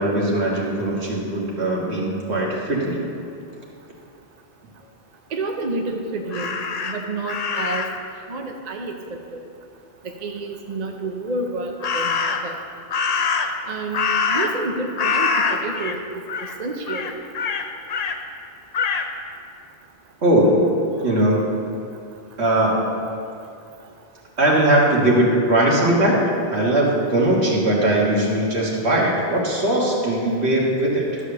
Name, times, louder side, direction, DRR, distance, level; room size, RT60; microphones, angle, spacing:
voice 1, 0.0-3.0 20.2-20.7 21.0-21.6 22.4-22.8 24.4-26.2 26.5-31.2, right 1 dB, 75° right, -3 dB, 2.0 m, -20 dB
voice 2, 5.3-7.9 8.3-9.2 10.0-12.2 12.4-12.6 13.7-16.0 16.6-17.1, right 2 dB, 45° right, 3 dB, 0.7 m, -29 dB
Crow, 6.3-8.1 11.8-12.6 12.9-14.7 15.0-16.0 16.3-16.5 16.9-18.2 18.7-19.1, left 5 dB, 45° left, 0.6 m, -24 dB
12.5 x 4.8 x 6.7 m, 2.5 s
omnidirectional pair, 1.1 m